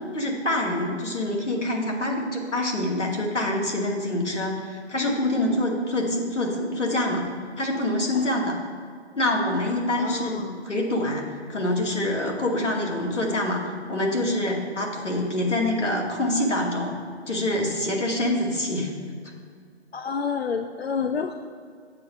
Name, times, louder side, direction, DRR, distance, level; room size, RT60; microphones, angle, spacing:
voice 1, 0.1-7.3 7.6-8.5 9.1-10.4 10.6-11.2 11.5-13.6 13.9-16.9 17.3-18.9, left 1 dB, 85° left, 0 dB, 2.3 m, -25 dB
voice 2, 8.1-8.5 10.0-10.6 19.9-21.3, left 5 dB, 60° left, 8 dB, 0.5 m, -29 dB
7.6 x 6.7 x 4.6 m, 2.1 s
figure-of-eight pair, 165°, 35 cm